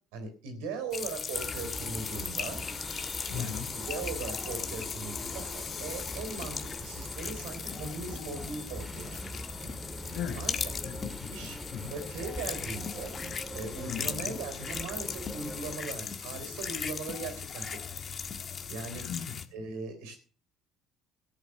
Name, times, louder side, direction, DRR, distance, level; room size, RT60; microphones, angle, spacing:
voice 1, 0.1-2.6 3.3-3.6 3.9-9.4 10.4-10.5 11.3-11.6 11.9-13.1 13.5-17.9 18.7-19.1 19.5-20.2, right 4 dB, 85° right, 3.8 m, -39 dB
sound 1, 0.9-19.5, left 6 dB, 40° left, 1.4 m, -38 dB
sound 2, 1.3-15.8, right 1 dB, 10° right, 2.0 m, -42 dB
voice 2, 3.3-3.7 10.1-10.5 10.8-11.9 13.9-14.4 18.9-19.4, left 8 dB, 75° left, 2.4 m, -38 dB
14.0 x 8.3 x 6.6 m
supercardioid pair, 80°, 0 cm